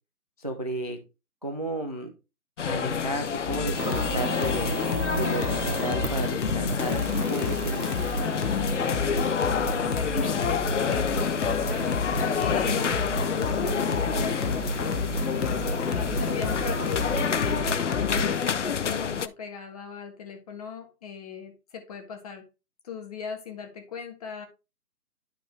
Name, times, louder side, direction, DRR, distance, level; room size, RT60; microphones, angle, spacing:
voice 1, 0.4-1.0 1.4-2.1 2.7-4.7 5.1-8.0 17.6-17.7, right 1 dB, 25° right, 6 dB, 0.5 m, -33 dB
sound 1, 2.6-19.3, left 7 dB, 50° left, 0.6 m, -29 dB
sound 2, 3.5-18.5, left 3 dB, 80° left, 1.2 m, -31 dB
sound 3, 3.8-17.6, right 5 dB, 60° right, 1.2 m, -37 dB
voice 2, 9.5-11.9 12.4-15.2 15.5-22.4 22.8-24.5, left 6 dB, 25° left, 4 dB, 1.2 m, -39 dB
11.0 x 4.1 x 3.3 m, 0.28 s
figure-of-eight pair, 150°, 49 cm